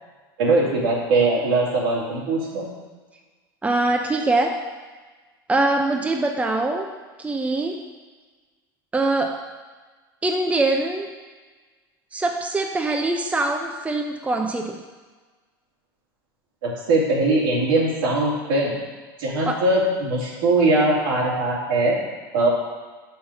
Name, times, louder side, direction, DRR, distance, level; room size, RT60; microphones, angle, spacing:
voice 1, 0.4-2.7 16.6-18.8 19.2-22.0 22.3-22.5, right 2 dB, 75° right, -5 dB, 2.8 m, -21 dB
voice 2, 3.6-4.6 5.5-6.9 7.2-7.8 8.9-9.4 10.2-11.1 12.1-14.8 19.4-19.6, right 2 dB, 10° right, 3 dB, 0.7 m, -23 dB
5.8 x 5.6 x 6.4 m, 1.4 s
hypercardioid pair, 85°, 12 cm